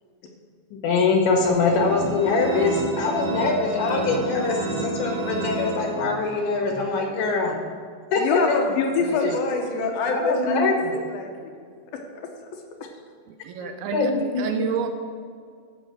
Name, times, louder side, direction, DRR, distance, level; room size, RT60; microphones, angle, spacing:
voice 1, 0.7-7.6 8.1-8.6 9.1-9.4 9.7-10.9 13.9-14.7, left 3 dB, 85° left, 1 dB, 3.9 m, -23 dB
sound 1, 1.5-7.5, equal, 40° right, 1.8 m, -40 dB
sound 2, 1.7-6.4, right 3 dB, 55° right, 2.3 m, -31 dB
voice 2, 8.2-10.6 10.9-12.0, left 4 dB, 70° left, 2 dB, 2.4 m, -26 dB
voice 3, 9.0-9.4 13.3-14.9, right 6 dB, 80° right, 6 dB, 2.5 m, -30 dB
13.0 x 6.7 x 6.1 m, 2.1 s
omnidirectional pair, 5.0 m